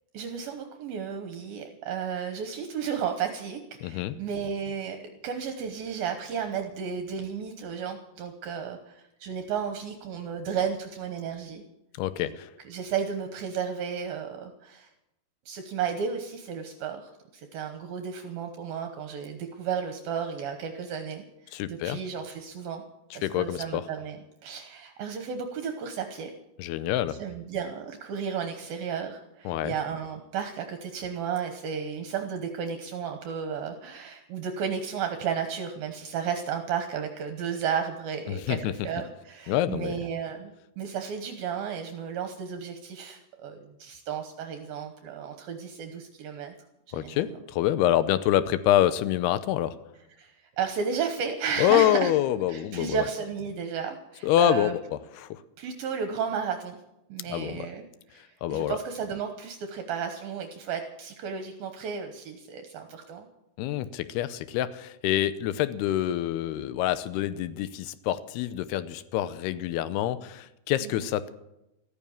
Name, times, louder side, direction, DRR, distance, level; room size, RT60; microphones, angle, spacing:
voice 1, 0.1-5.0 5.2-11.6 12.2-12.3 12.7-14.9 15.5-22.8 23.1-24.2 24.4-26.3 27.1-46.5 46.9-47.4 50.2-52.1 52.5-54.7 55.6-56.8 57.1-57.8 58.1-63.3 70.8-71.0, right 7 dB, 70° right, 6 dB, 2.7 m, -33 dB
voice 2, 3.8-4.2 12.0-12.5 21.5-22.0 23.2-23.8 26.6-27.2 29.5-29.7 38.3-38.9 39.5-39.9 46.9-49.8 51.6-53.1 54.2-55.4 57.3-57.6 58.4-58.8 63.6-71.3, left 12 dB, 80° left, 15 dB, 2.7 m, -26 dB
14.0 x 14.0 x 7.2 m, 0.89 s
omnidirectional pair, 4.7 m